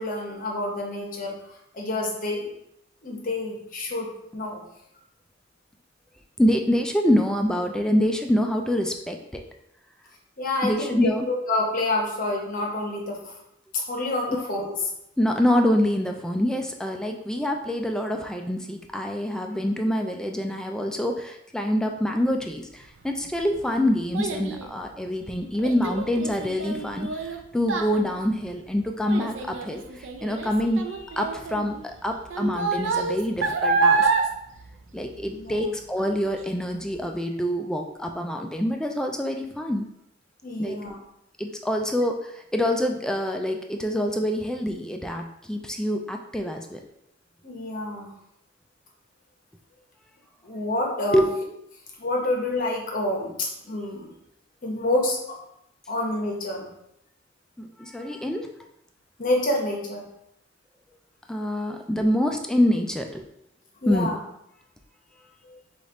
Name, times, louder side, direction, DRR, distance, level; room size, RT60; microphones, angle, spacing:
voice 1, 0.0-1.4 1.7-2.5 3.0-4.6 10.4-13.2 13.7-14.7 35.3-35.7 40.4-41.0 47.4-48.1 50.4-51.2 52.0-54.1 54.6-55.4 55.9-56.7 59.2-60.0 63.8-64.2 65.5-65.6, left 2 dB, 45° left, 0 dB, 1.0 m, -28 dB
voice 2, 6.4-9.4 10.6-11.3 15.2-34.1 34.9-39.9 40.6-40.8 41.4-46.8 51.1-51.3 57.6-58.5 61.3-63.3 63.9-64.1, equal, 5° left, 3 dB, 0.3 m, -26 dB
Child speech kid speaking, 23.0-35.6 36.0-36.4 36.9-37.0, right 4 dB, 75° right, 0.5 m, -28 dB
5.1 x 2.5 x 3.9 m, 0.79 s
head